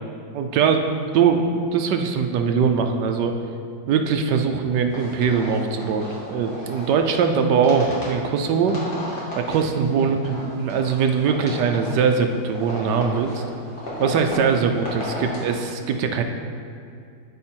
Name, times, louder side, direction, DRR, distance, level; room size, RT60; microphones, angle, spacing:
voice 1, 0.3-0.9 1.1-3.3 3.9-8.8 9.3-13.4 14.0-16.2, right 6 dB, 70° right, 5 dB, 1.1 m, -21 dB
sound 1, 4.9-15.6, equal, 25° left, 1.9 m, -35 dB
12.0 x 4.5 x 4.4 m, 2.5 s
omnidirectional pair, 2.1 m